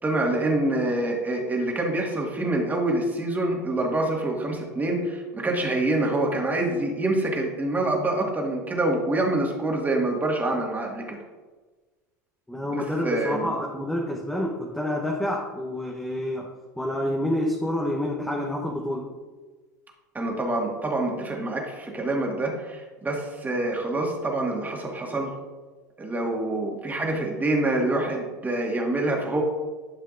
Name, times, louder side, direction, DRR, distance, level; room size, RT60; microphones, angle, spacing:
voice 1, 0.0-11.2 13.0-13.5 20.1-25.3 26.0-29.4, right 2 dB, 15° right, 0 dB, 2.0 m, -26 dB
voice 2, 12.5-16.5 16.8-19.0, left 1 dB, 5° left, -1 dB, 1.0 m, -28 dB
11.5 x 5.6 x 2.6 m, 1.3 s
hypercardioid pair, 80°, 10 cm